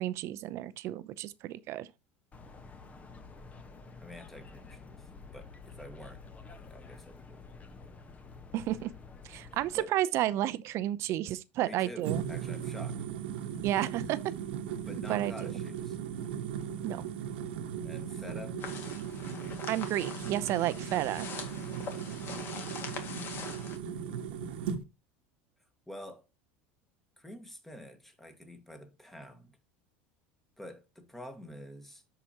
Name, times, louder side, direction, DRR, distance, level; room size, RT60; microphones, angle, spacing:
voice 1, 0.0-1.9 8.5-8.9 9.2-12.2 13.6-14.2 15.1-15.5 16.8-17.0 19.7-21.3, right 13 dB, 55° right, 0.6 m, -31 dB
sound 1, 2.3-9.8, left 4 dB, 25° left, 1.3 m, -50 dB
voice 2, 4.0-7.5 9.7-9.9 11.6-13.0 14.8-16.0 17.8-18.6 21.8-22.2 25.9-26.3 27.2-29.6 30.6-32.0, left 1 dB, 5° left, 1.7 m, -48 dB
sound 2, 12.0-24.8, right 8 dB, 85° right, 1.2 m, -37 dB
sound 3, 18.6-23.8, left 5 dB, 40° left, 2.1 m, -43 dB
13.0 x 5.0 x 2.9 m
supercardioid pair, 105°, 6 cm